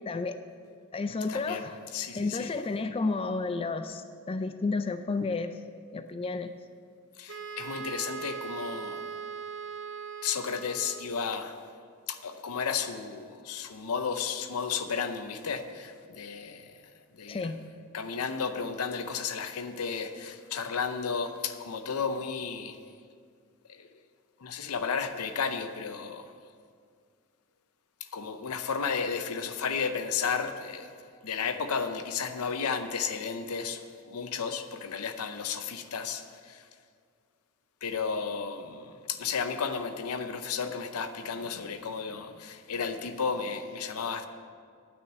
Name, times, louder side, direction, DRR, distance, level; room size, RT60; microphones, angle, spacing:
voice 1, 0.1-0.4 0.9-1.8 2.1-5.5 5.9-6.5 17.3-17.6, left 3 dB, 25° left, 10 dB, 0.3 m, -31 dB
voice 2, 1.3-1.6 1.9-2.5 7.2-9.0 10.2-11.6 12.1-16.8 17.2-17.5 17.9-22.8 23.7-23.9 24.4-26.3 28.1-30.9 31.2-36.6 37.8-44.3, left 6 dB, 85° left, 9 dB, 0.7 m, -33 dB
Wind instrument woodwind instrument, 7.3-11.3, right 6 dB, 60° right, 0.6 m, -40 dB
9.1 x 6.4 x 8.3 m, 2.2 s
head